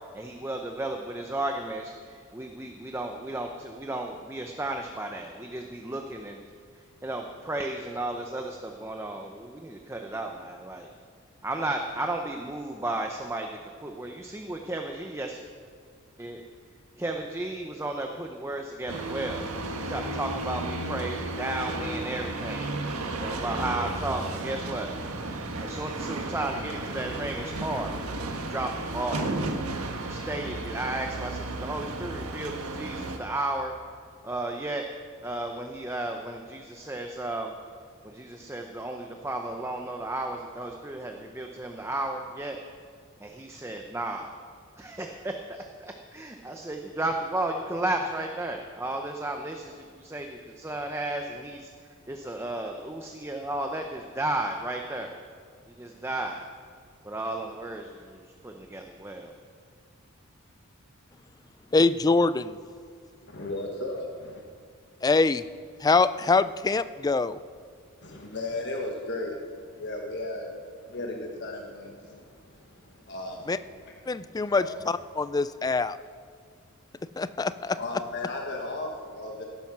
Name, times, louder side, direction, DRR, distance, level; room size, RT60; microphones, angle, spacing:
voice 1, 0.1-6.4 7.0-10.9 11.4-15.4 16.2-16.4 17.0-19.5 19.8-22.8 23.2-24.9 25.6-27.9 28.3-29.4 30.0-33.7 34.2-34.8 35.2-37.5 38.0-42.6 43.2-44.4 44.8-51.7 52.1-55.2 55.7-56.4 57.0-59.3, right 2 dB, 10° right, 3 dB, 0.7 m, -33 dB
sound 1, 18.9-33.2, right 2 dB, 90° right, 1.5 m, -33 dB
voice 2, 61.7-62.6 65.0-65.4 65.8-67.4 73.5-73.6 74.1-76.0 77.2-77.8, left 3 dB, 15° left, 15 dB, 0.3 m, -24 dB
voice 3, 63.3-64.4 68.0-73.6 73.9-74.0 74.3-74.8 77.6-79.4, left 2 dB, 50° left, 1 dB, 1.4 m, -36 dB
16.5 x 9.1 x 6.1 m, 2.1 s
head